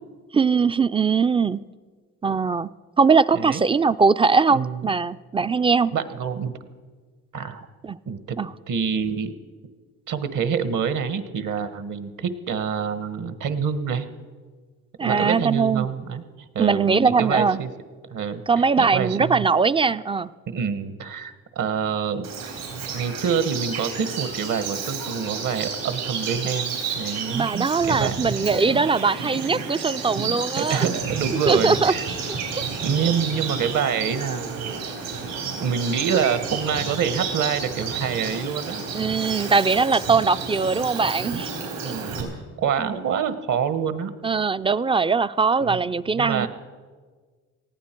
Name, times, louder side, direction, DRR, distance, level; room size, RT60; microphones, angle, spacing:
voice 1, 0.3-1.6 2.2-2.7 3.0-5.9 7.8-8.0 8.4-8.5 15.0-15.9 16.6-17.6 18.5-20.3 27.3-30.8 31.5-31.9 32.5-32.6 38.9-41.5 41.8-41.9 42.8-42.9 44.2-46.5, right 5 dB, 15° right, 16 dB, 0.3 m, -21 dB
voice 2, 4.5-4.9 5.4-5.5 5.9-6.5 7.3-7.7 8.1-8.4 8.7-9.3 10.1-14.1 15.0-17.7 18.1-19.5 20.5-22.3 22.9-28.2 30.6-32.1 32.8-34.9 35.6-38.8 41.8-42.3 42.6-44.1 45.6-45.8 46.1-46.5, right 7 dB, 60° right, 12 dB, 1.3 m, -26 dB
Bird vocalization bird call bird song, 22.2-42.2, right 5 dB, 80° right, 4.0 m, -31 dB
19.0 x 14.5 x 4.5 m, 1.5 s
supercardioid pair, 70°, 34 cm